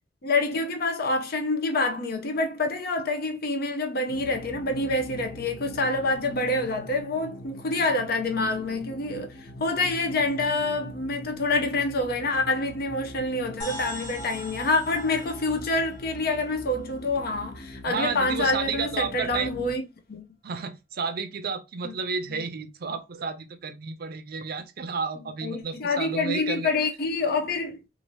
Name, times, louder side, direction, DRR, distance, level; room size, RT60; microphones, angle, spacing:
voice 1, 0.2-19.8 20.1-20.2 25.4-27.8, left 2 dB, 55° left, 0.6 m, -27 dB
sound 1, 4.1-19.7, equal, 75° left, 0.9 m, -43 dB
sound 2, 13.6-17.4, equal, 25° left, 1.2 m, -41 dB
voice 2, 17.8-19.5 20.4-26.7, right 5 dB, 55° right, 0.5 m, -32 dB
2.7 x 2.5 x 3.0 m
head